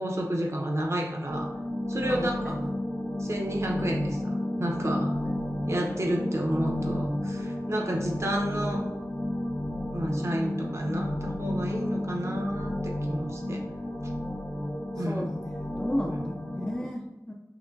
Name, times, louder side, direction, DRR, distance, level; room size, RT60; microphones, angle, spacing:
voice 1, 0.0-1.5 1.9-2.5 3.2-5.1 5.7-8.9 9.9-13.6 15.0-15.3, right 1 dB, 50° right, 0 dB, 0.8 m, -31 dB
sound 1, 1.3-16.8, left 1 dB, 60° left, 1.4 m, -32 dB
voice 2, 2.0-2.7 15.0-15.4 15.8-17.3, left 1 dB, 15° left, -1 dB, 0.4 m, -33 dB
5.7 x 2.2 x 2.6 m, 1.0 s
wide cardioid pair, 45°, 6 cm